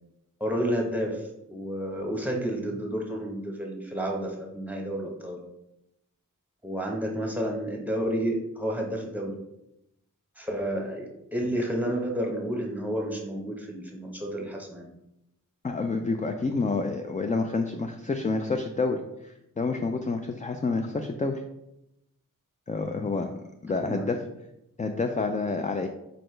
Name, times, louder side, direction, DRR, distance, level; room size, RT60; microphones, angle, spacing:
voice 1, 0.4-5.4 6.6-9.4 10.4-14.8 23.7-24.1, equal, 5° right, 0 dB, 1.0 m, -30 dB
voice 2, 15.6-21.4 22.7-23.3 23.6-24.2 24.8-25.9, left 3 dB, 25° left, 5 dB, 0.3 m, -28 dB
4.2 x 3.8 x 3.2 m, 0.86 s
wide cardioid pair, 55°, 33 cm